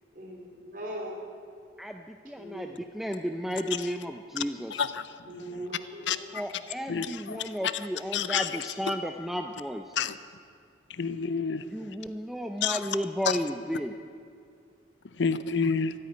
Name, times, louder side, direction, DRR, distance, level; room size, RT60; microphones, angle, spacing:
voice 1, 0.1-1.2 2.2-2.8 5.3-6.2, right 1 dB, 45° right, 0 dB, 3.1 m, -40 dB
voice 2, 1.8-4.9 6.3-10.0 11.6-14.0, equal, ahead, 5 dB, 0.4 m, -33 dB
voice 3, 4.7-5.1 6.1-6.2 6.9-7.9 8.1-8.5 10.0-10.2 10.9-11.6 12.6-12.8 13.3-13.4 15.2-15.9, left 6 dB, 75° left, 14 dB, 0.6 m, -29 dB
13.5 x 9.0 x 9.6 m, 2.3 s
head